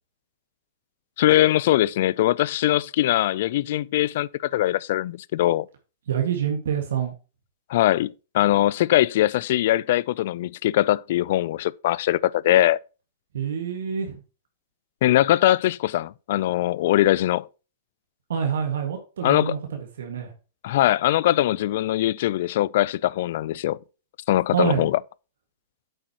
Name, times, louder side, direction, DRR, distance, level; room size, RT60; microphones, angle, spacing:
voice 1, 1.2-5.7 7.7-12.8 15.0-17.5 19.2-19.6 20.6-23.8 24.3-25.0, left 14 dB, 60° left, 0.3 m, -21 dB
voice 2, 6.1-7.1 13.3-14.2 18.3-20.3 24.5-24.9, right 8 dB, 80° right, 1.7 m, -26 dB
9.1 x 7.6 x 2.9 m
hypercardioid pair, 135°, 0 cm